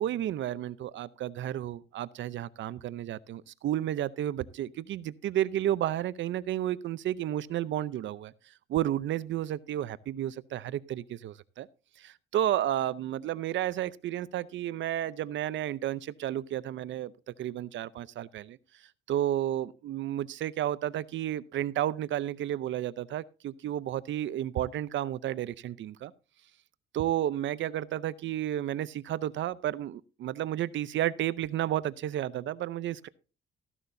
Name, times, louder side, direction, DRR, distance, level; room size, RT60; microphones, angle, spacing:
voice 1, 0.0-8.3 8.7-11.7 12.0-17.1 17.4-18.6 19.1-26.1 26.9-33.1, right 12 dB, 70° right, 0.6 m, -32 dB
14.5 x 11.0 x 2.7 m
cardioid pair, 90°, 20 cm